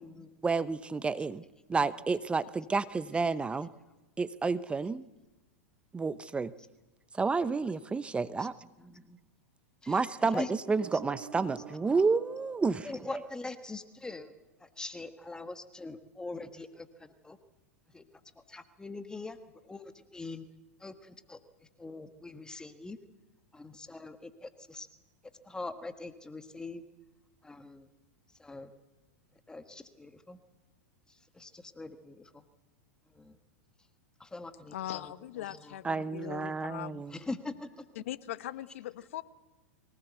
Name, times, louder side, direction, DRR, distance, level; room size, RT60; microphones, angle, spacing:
voice 1, 0.4-1.4 1.7-3.7 4.2-5.0 5.9-6.5 7.1-8.5 9.9-13.2 35.8-37.2, right 4 dB, 15° right, 16 dB, 0.8 m, -30 dB
voice 2, 8.8-9.2 9.8-10.5 10.9-11.0 12.8-14.3 14.6-17.4 17.9-18.0 18.5-19.4 19.7-20.4 20.8-21.4 21.8-23.0 23.5-24.9 25.4-26.8 27.4-27.9 28.4-28.7 29.5-30.4 31.4-32.3 33.2-33.3 34.2-35.7 37.1-37.7, left 3 dB, 10° left, 9 dB, 1.5 m, -43 dB
sound 1, 10.6-13.6, right 6 dB, 65° right, 7.5 m, -49 dB
voice 3, 34.7-37.0 37.9-39.2, left 13 dB, 70° left, 14 dB, 1.3 m, -40 dB
23.5 x 18.5 x 8.2 m, 1.1 s
hypercardioid pair, 105°, 7 cm